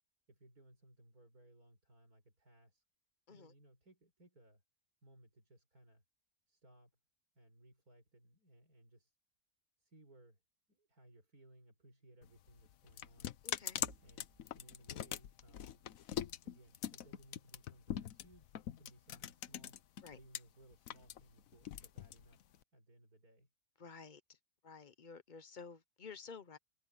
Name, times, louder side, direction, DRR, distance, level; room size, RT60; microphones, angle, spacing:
voice 1, 0.3-2.8 3.3-4.6 5.0-6.0 6.5-6.9 7.3-9.2 9.8-10.4 10.7-13.4 14.0-15.9 16.4-19.8 20.1-22.4 22.7-23.5, right 1 dB, 80° right, 7.3 m, -64 dB
sound 1, 12.2-20.4 20.7-22.6, left 10 dB, 70° left, 1.2 m, -43 dB
voice 2, 13.4-13.8 20.0-20.2 23.8-24.2 24.6-26.6, left 5 dB, 40° left, 0.8 m, -52 dB
sound 2, 13.8-17.6, right 2 dB, 60° right, 3.7 m, -65 dB
omnidirectional pair, 1.6 m